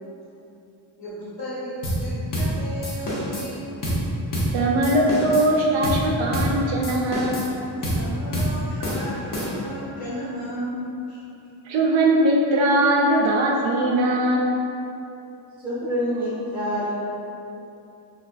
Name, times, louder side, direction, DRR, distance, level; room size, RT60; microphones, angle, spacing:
voice 1, 1.0-3.7 7.8-11.2, equal, 65° left, -10 dB, 1.1 m, -34 dB
sound 1, 1.8-2.1 2.3-2.6 2.8-3.5 3.8-4.1 4.3-4.6 4.8-5.5 5.8-6.1 6.3-6.6 6.8-7.5 7.8-8.1 8.3-8.6 8.8-9.7, equal, 45° left, 0.7 m, -26 dB
voice 2, 4.5-7.4 11.7-14.5, right 1 dB, 70° right, -2 dB, 0.7 m, -20 dB
voice 3, 15.6-16.9, equal, 10° right, -12 dB, 0.7 m, -26 dB
4.5 x 2.4 x 2.4 m, 2.9 s
wide cardioid pair, 155°, 47 cm